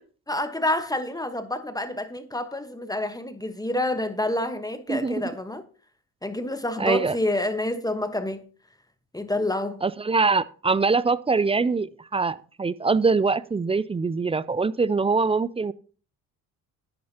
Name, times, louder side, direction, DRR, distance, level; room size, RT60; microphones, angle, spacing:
voice 1, 0.3-5.6 6.2-8.4 9.1-9.8, left 1 dB, 10° left, 1.3 m, -28 dB
voice 2, 6.8-7.2 9.8-15.7, right 4 dB, 15° right, 0.4 m, -23 dB
11.0 x 9.2 x 2.9 m
hypercardioid pair, 55°, 42 cm